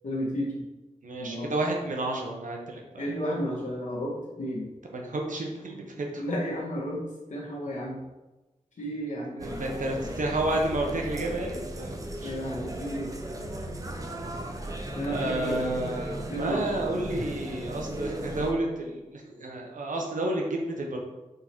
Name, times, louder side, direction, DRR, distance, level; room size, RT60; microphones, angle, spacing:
voice 1, 0.0-0.6 1.2-1.5 3.0-4.7 6.2-7.0 7.3-8.0 8.8-9.4 12.2-13.1 15.0-15.6 16.3-16.7, equal, 70° left, -6 dB, 1.7 m, -32 dB
voice 2, 1.0-3.1 4.9-6.2 9.4-12.3 15.1-21.0, right 2 dB, 85° right, 0 dB, 1.1 m, -31 dB
sound 1, 9.4-18.5, right 1 dB, 25° right, 0.8 m, -36 dB
6.6 x 3.9 x 4.5 m, 1.1 s
wide cardioid pair, 110°, 13 cm